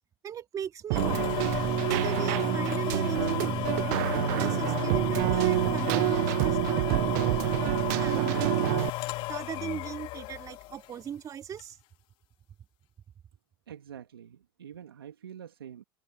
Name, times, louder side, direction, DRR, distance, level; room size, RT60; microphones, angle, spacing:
voice 1, 0.2-1.5 1.9-4.0 4.4-7.4 8.0-8.6 9.3-11.8, right 8 dB, 30° right, 2.5 m, -38 dB
sound 1, 0.9-11.0 11.6-11.7, left 18 dB, 45° left, 1.7 m, -33 dB
Keyboard (musical), 0.9-8.9, right 26 dB, 55° right, 0.5 m, -27 dB
sound 2, 5.3-10.6, left 21 dB, 65° left, 4.2 m, -53 dB
voice 2, 13.7-15.8, right 9 dB, 90° right, 1.9 m, -46 dB
open air
hypercardioid pair, 110°, 12 cm